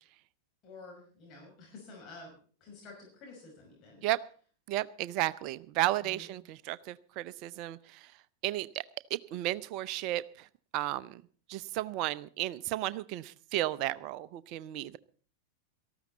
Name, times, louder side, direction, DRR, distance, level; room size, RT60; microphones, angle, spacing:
voice 1, 0.6-2.3 2.6-4.0 6.0-6.3, left 3 dB, 35° left, -1 dB, 5.8 m, -50 dB
voice 2, 4.7-8.1 8.4-8.8 9.1-10.5 10.7-11.2 11.5-15.0, right 15 dB, 40° right, 17 dB, 0.7 m, -33 dB
18.5 x 14.5 x 4.1 m, 0.43 s
figure-of-eight pair, 90°, 0 cm